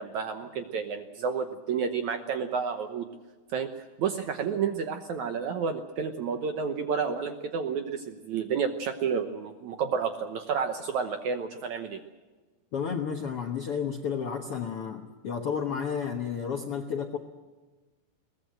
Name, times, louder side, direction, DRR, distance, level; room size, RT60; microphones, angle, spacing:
voice 1, 0.0-3.1 3.5-3.7 4.0-12.0, right 6 dB, 70° right, 7 dB, 1.9 m, -30 dB
voice 2, 12.7-17.2, left 7 dB, 65° left, 3 dB, 1.4 m, -32 dB
22.0 x 18.5 x 7.8 m, 1.3 s
omnidirectional pair, 4.4 m